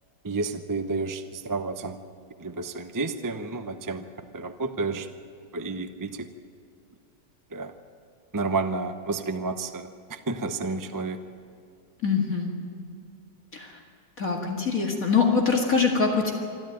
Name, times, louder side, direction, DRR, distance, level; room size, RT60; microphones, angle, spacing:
voice 1, 0.2-2.0 2.4-4.0 4.3-5.1 5.5-6.3 7.5-7.7 8.3-11.2, right 3 dB, 25° right, 8 dB, 0.4 m, -30 dB
voice 2, 12.0-12.5 13.5-13.8 14.2-16.3, left 5 dB, 50° left, 1 dB, 2.3 m, -23 dB
25.5 x 13.0 x 9.1 m, 2.5 s
omnidirectional pair, 2.0 m